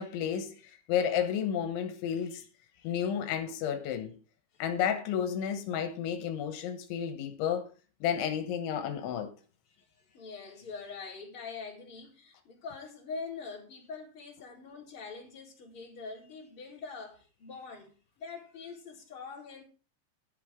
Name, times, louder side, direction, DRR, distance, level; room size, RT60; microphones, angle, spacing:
voice 1, 0.0-2.4 2.8-4.1 4.6-7.7 8.0-9.3, left 8 dB, 85° left, 3.6 m, -32 dB
voice 2, 9.7-19.6, left 4 dB, 30° left, 4.8 m, -44 dB
12.5 x 11.0 x 3.7 m
omnidirectional pair, 5.2 m